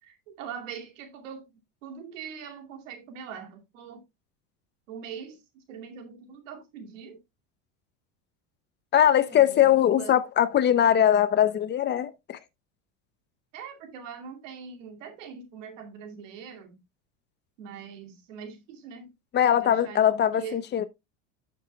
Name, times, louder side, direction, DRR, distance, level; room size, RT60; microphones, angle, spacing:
voice 1, 0.0-4.0 4.9-7.2 9.3-10.2 13.5-16.8 17.6-19.1 19.6-20.6, right 7 dB, 85° right, 2.5 m, -42 dB
voice 2, 8.9-12.4 19.3-20.8, left 10 dB, 30° left, 0.7 m, -21 dB
11.5 x 6.8 x 2.3 m
supercardioid pair, 130°, 37 cm